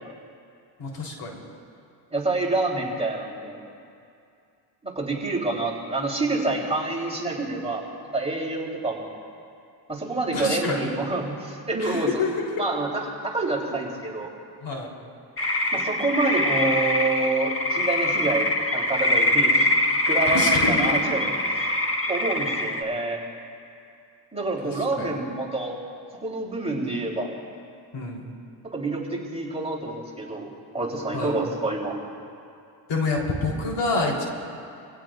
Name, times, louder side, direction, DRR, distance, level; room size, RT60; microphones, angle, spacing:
voice 1, 0.8-1.4 10.3-10.9 11.8-12.5 14.6-14.9 20.3-20.8 24.7-25.1 27.9-28.3 31.1-31.4 32.9-34.2, left 3 dB, 60° left, -1 dB, 4.0 m, -27 dB
voice 2, 2.1-3.6 4.8-7.9 8.1-9.2 9.9-12.2 12.6-14.3 15.7-19.7 20.1-21.7 22.1-23.2 24.3-25.7 26.2-27.3 28.7-32.0, right 2 dB, 10° right, -4 dB, 3.7 m, -27 dB
sound 1, 15.4-22.8, left 1 dB, 25° left, 1.7 m, -23 dB
26.0 x 16.5 x 2.6 m, 2.5 s
supercardioid pair, 85°, 49 cm